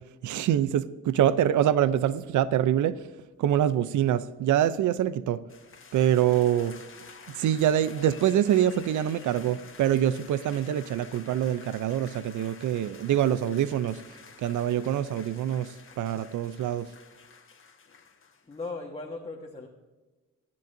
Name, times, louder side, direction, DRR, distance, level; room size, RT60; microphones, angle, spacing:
voice 1, 0.2-3.0 3.4-5.4 5.9-6.8 7.3-14.0 14.4-16.9, right 10 dB, 75° right, 15 dB, 0.6 m, -25 dB
sound 1, 5.5-18.7, left 5 dB, 40° left, 1.6 m, -50 dB
voice 2, 18.5-19.7, left 3 dB, 20° left, 0 dB, 1.4 m, -37 dB
24.5 x 10.5 x 2.6 m, 1.2 s
cardioid pair, 85°, 31 cm